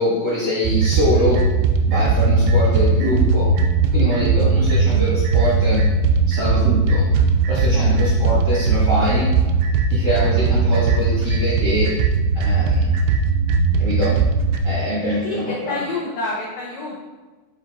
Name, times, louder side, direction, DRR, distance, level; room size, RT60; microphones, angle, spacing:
voice 1, 0.0-1.4 1.8-3.5 3.9-5.8 6.3-7.1 7.5-9.3 9.9-11.9 12.3-12.9 13.8-14.2 14.6-15.8, equal, 45° right, -8 dB, 1.5 m, -23 dB
sound 1, 0.6-14.6, right 4 dB, 85° right, 2.5 m, -18 dB
voice 2, 15.2-17.0, left 2 dB, 85° left, -4 dB, 1.6 m, -28 dB
7.9 x 5.3 x 2.6 m, 1.2 s
omnidirectional pair, 4.6 m